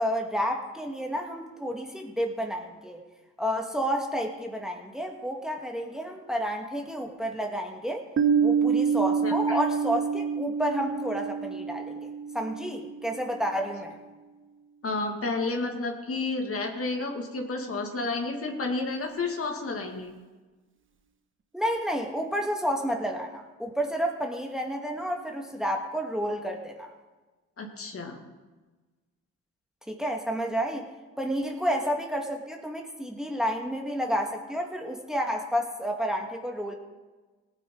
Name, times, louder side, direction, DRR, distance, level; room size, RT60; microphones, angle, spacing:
voice 1, 0.0-3.0 3.4-8.0 8.4-12.0 12.3-13.9 21.5-26.9 29.9-30.9 31.2-36.7, equal, ahead, 2 dB, 1.8 m, -30 dB
Piano, 8.2-13.5, right 6 dB, 40° right, 1.3 m, -27 dB
voice 2, 9.2-9.6 14.8-20.1 27.6-28.2, left 3 dB, 45° left, 2 dB, 2.2 m, -31 dB
18.0 x 9.7 x 3.9 m, 1.2 s
supercardioid pair, 70°, 32 cm